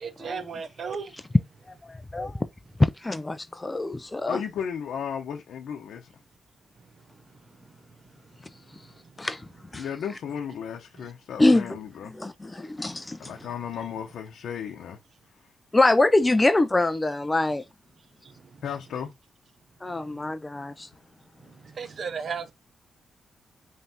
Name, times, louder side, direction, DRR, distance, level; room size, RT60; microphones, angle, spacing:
voice 1, 0.0-1.1 18.2-18.3 21.5-22.5, right 6 dB, 50° right, 0.7 m, -34 dB
voice 2, 1.7-2.5 3.0-4.4 9.2-9.5 9.7-9.9 11.4-11.8 12.0-13.3 15.7-17.6 19.8-20.9, left 2 dB, 15° left, 0.4 m, -24 dB
voice 3, 4.3-6.1 9.7-12.1 13.2-15.0 18.6-19.1, left 8 dB, 85° left, 0.7 m, -34 dB
5.5 x 3.1 x 2.8 m
wide cardioid pair, 150°, 0 cm